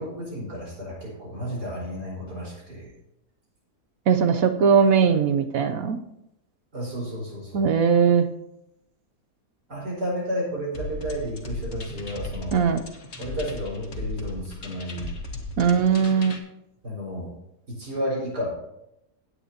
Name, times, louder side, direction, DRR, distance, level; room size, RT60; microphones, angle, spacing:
voice 1, 0.0-2.9 6.7-7.7 9.7-12.6 13.2-15.1 16.8-17.3 17.7-18.5, equal, 85° right, -4 dB, 5.5 m, -32 dB
voice 2, 4.1-6.0 7.5-8.3 12.5-12.8 15.6-16.3, right 6 dB, 65° right, 8 dB, 1.1 m, -20 dB
sound 1, 10.7-16.4, left 2 dB, 45° left, 1.5 m, -36 dB
17.0 x 8.5 x 2.9 m, 0.83 s
omnidirectional pair, 1.7 m